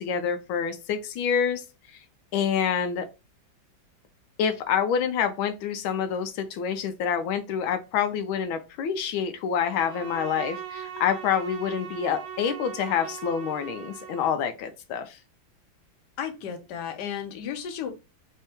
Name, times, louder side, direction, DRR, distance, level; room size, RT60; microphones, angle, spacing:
voice 1, 0.0-1.6 1.9-2.0 2.3-3.1 4.4-15.2, left 7 dB, 90° left, 1.4 m, -27 dB
Bowed string instrument, 9.6-14.5, right 9 dB, 75° right, 1.3 m, -40 dB
voice 2, 16.2-17.9, left 8 dB, 65° left, 1.3 m, -33 dB
4.3 x 2.7 x 3.5 m
omnidirectional pair, 2.2 m